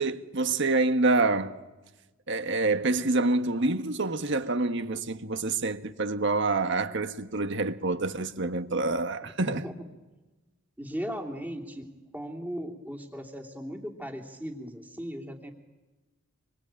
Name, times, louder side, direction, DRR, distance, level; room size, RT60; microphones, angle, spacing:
voice 1, 0.0-1.6 2.3-9.7, right 3 dB, 60° right, 1.5 m, -27 dB
voice 2, 9.4-9.7 10.8-11.9 12.1-15.5, equal, 10° right, 3.0 m, -37 dB
26.5 x 24.5 x 9.0 m
head